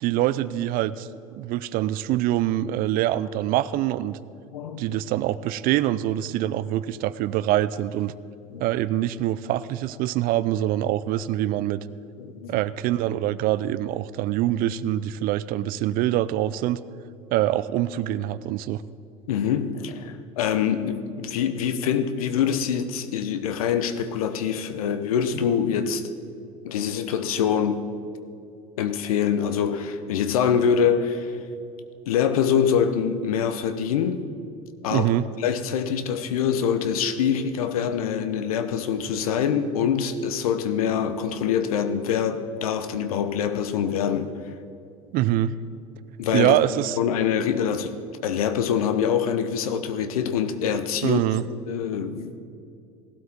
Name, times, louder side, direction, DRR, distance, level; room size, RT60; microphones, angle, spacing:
voice 1, 0.0-1.1 1.4-4.2 4.8-8.1 8.6-11.8 12.5-16.8 17.3-18.8 34.9-35.2 45.1-45.5 46.3-47.0 51.0-51.4, right 13 dB, 55° right, 0.5 m, -24 dB
voice 2, 4.5-5.0 8.5-8.6 12.2-12.5 19.3-26.0 26.6-27.9 28.8-31.4 32.1-34.2 34.8-35.1 35.4-44.3 46.2-46.6 47.0-51.2 51.7-52.4, left 8 dB, 80° left, 0.8 m, -25 dB
18.0 x 12.5 x 3.6 m
hypercardioid pair, 80°, 18 cm